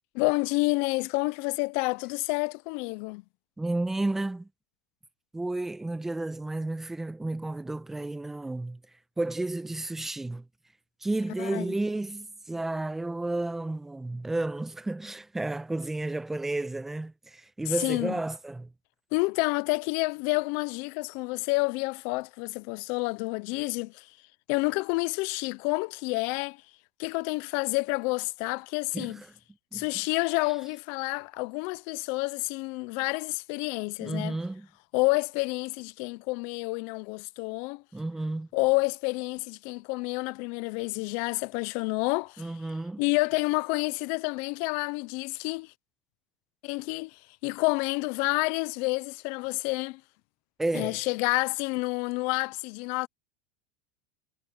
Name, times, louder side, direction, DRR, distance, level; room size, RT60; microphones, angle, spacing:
voice 1, 0.1-3.2 11.4-11.6 17.7-18.1 19.1-24.1 24.5-26.6 27.0-29.2 29.7-34.4 34.9-37.8 38.5-42.5 43.0-45.7 46.6-50.0 50.7-53.1, left 26 dB, 65° left, 0.6 m, -29 dB
voice 2, 3.6-4.5 5.3-8.8 9.2-10.5 11.0-18.7 28.9-29.3 29.7-29.8 34.0-34.7 37.9-38.5 42.4-43.0 50.6-51.1, right 2 dB, 10° right, 1.0 m, -32 dB
supercardioid pair, 115°, 4 cm